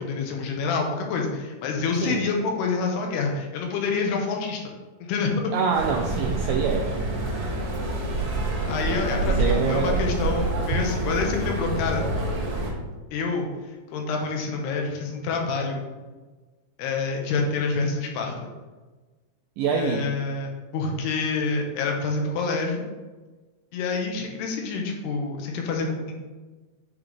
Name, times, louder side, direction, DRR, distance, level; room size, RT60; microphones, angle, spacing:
voice 1, 0.0-4.6 5.1-5.5 8.7-12.0 13.1-13.5 13.9-15.8 16.8-18.3 19.7-22.8 23.7-26.1, left 4 dB, 90° left, 1 dB, 2.9 m, -27 dB
voice 2, 5.5-6.9 9.3-10.0 19.6-20.1, right 5 dB, 85° right, 1 dB, 2.0 m, -25 dB
sound 1, 5.7-12.7, right 2 dB, 70° right, 3.1 m, -27 dB
9.2 x 3.9 x 3.3 m, 1.3 s
omnidirectional pair, 4.6 m